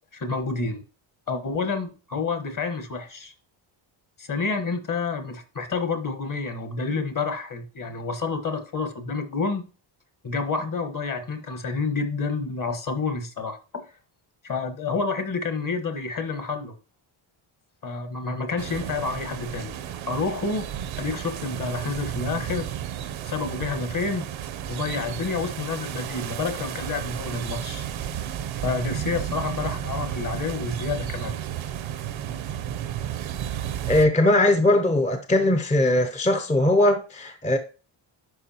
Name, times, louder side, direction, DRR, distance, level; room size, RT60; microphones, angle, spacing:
voice 1, 0.1-0.8 1.3-3.3 4.2-9.7 10.2-13.9 14.4-16.7 17.8-19.7 20.1-20.7 21.0-22.7 23.2-24.2 24.7-27.8 28.6-31.3, left 4 dB, 40° left, 1.3 m, -29 dB
sound 1, 18.6-34.1, right 10 dB, 65° right, 0.8 m, -33 dB
voice 2, 33.9-37.6, left 1 dB, 15° left, 0.6 m, -20 dB
11.0 x 4.7 x 2.9 m
cardioid pair, 115°, 50 cm